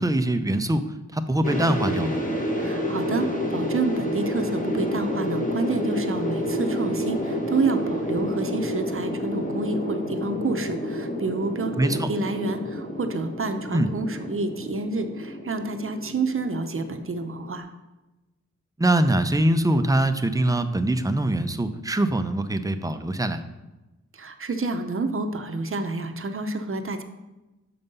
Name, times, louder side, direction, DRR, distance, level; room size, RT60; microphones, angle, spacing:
voice 1, 0.0-2.2 11.8-12.1 13.7-13.9 18.8-23.4, right 1 dB, 10° right, 9 dB, 0.5 m, -23 dB
sound 1, 1.4-17.6, equal, 25° left, 1.1 m, -29 dB
voice 2, 2.6-17.7 24.1-27.0, right 3 dB, 45° right, 7 dB, 0.7 m, -29 dB
6.9 x 5.4 x 5.4 m, 1.1 s
wide cardioid pair, 115°, 30 cm